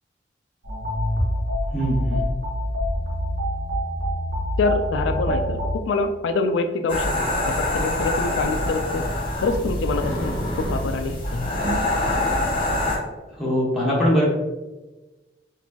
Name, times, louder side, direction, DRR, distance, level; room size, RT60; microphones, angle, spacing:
sound 1, 0.6-5.7, equal, 65° right, 1.4 m, -26 dB
voice 1, 1.7-2.2 13.3-14.2, equal, ahead, -6 dB, 1.1 m, -21 dB
voice 2, 4.6-5.6 5.9-7.1 7.4-9.1 9.4-11.6, left 3 dB, 80° left, 8 dB, 0.3 m, -25 dB
sound 2, 6.9-13.0, left 1 dB, 30° left, 1.0 m, -25 dB
4.3 x 2.6 x 2.8 m, 1.1 s
head